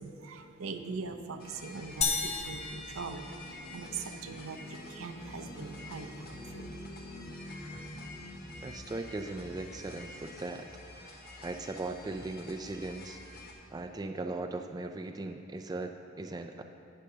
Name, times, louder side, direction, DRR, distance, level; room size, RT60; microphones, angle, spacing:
voice 1, 0.0-6.7, right 4 dB, 85° right, 6 dB, 0.7 m, -41 dB
sound 1, 1.4-13.5, left 2 dB, 45° left, 1.2 m, -49 dB
sound 2, 2.0-3.9, left 5 dB, 30° left, 0.6 m, -34 dB
sound 3, 2.6-11.2, equal, 80° left, 1.8 m, -49 dB
voice 2, 8.6-10.7 10.9-13.2 13.7-16.6, right 2 dB, 20° right, 5 dB, 0.3 m, -39 dB
18.0 x 6.5 x 2.8 m, 2.9 s
head